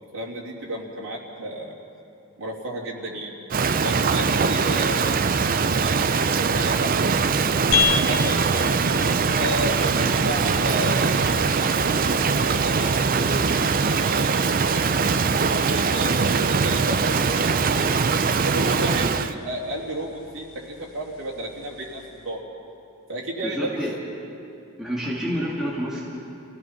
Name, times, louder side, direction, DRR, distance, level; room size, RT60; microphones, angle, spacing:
voice 1, 0.0-1.7 2.4-3.4 3.8-5.1 5.6-7.3 7.8-8.8 9.3-14.5 15.4-17.9 18.4-22.4 23.1-23.8, right 1 dB, 75° right, -4 dB, 3.2 m, -33 dB
Rain, 3.5-19.3, right 5 dB, 40° right, 0.5 m, -22 dB
sound 1, 7.7-22.3, left 6 dB, 80° left, 1.0 m, -34 dB
voice 2, 23.4-23.9 24.8-26.0, equal, ahead, -7 dB, 2.3 m, -28 dB
27.5 x 16.5 x 5.8 m, 2.6 s
head